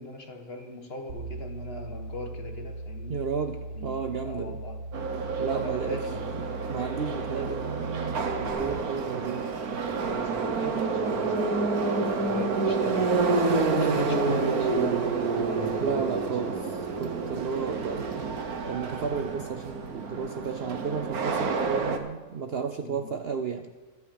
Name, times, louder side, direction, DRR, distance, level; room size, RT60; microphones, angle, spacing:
voice 1, 0.0-3.2 3.7-4.8 5.6-6.7 7.3-7.6 10.0-16.7 22.8-23.1, left 2 dB, 40° left, 4 dB, 1.9 m, -41 dB
sound 1, 1.1-8.5, right 2 dB, 90° right, 2.3 m, -39 dB
voice 2, 3.1-4.6 5.4-6.0 6.3-9.5 13.9-14.4 15.8-16.5 17.0-23.7, right 6 dB, 50° right, 7 dB, 0.8 m, -33 dB
Subway metro underground, 4.9-22.0, right 4 dB, 70° right, 1.8 m, -28 dB
Keyboard (musical), 14.7-17.5, right 4 dB, 75° left, 2.0 m, -37 dB
24.5 x 8.4 x 5.3 m, 1.3 s
omnidirectional pair, 1.6 m